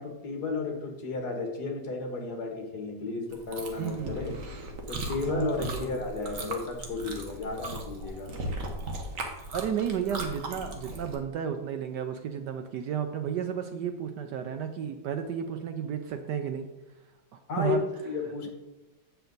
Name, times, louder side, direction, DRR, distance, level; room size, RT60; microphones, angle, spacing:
voice 1, 0.0-4.3 4.9-8.3 17.5-17.8 18.0-18.5, left 4 dB, 55° left, 3 dB, 1.7 m, -33 dB
Chewing mastication, 3.3-11.1, right 1 dB, 45° right, 1.3 m, -38 dB
voice 2, 3.8-4.2 5.3-6.0 9.5-16.7 17.3-17.8, right 8 dB, 70° right, 7 dB, 1.1 m, -32 dB
8.1 x 6.8 x 3.9 m, 1.0 s
omnidirectional pair, 2.2 m